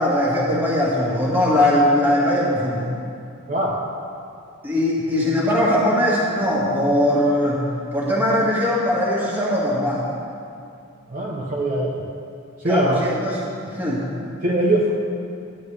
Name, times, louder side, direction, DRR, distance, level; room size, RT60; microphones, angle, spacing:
voice 1, 0.0-2.9 4.6-7.6 7.9-10.0 12.6-13.4 13.7-14.0, left 1 dB, 10° right, -6 dB, 1.8 m, -20 dB
voice 2, 3.5-3.8 11.1-12.1 12.6-13.0 14.4-14.9, right 1 dB, 40° right, -3 dB, 0.7 m, -21 dB
11.5 x 9.5 x 3.3 m, 2.5 s
head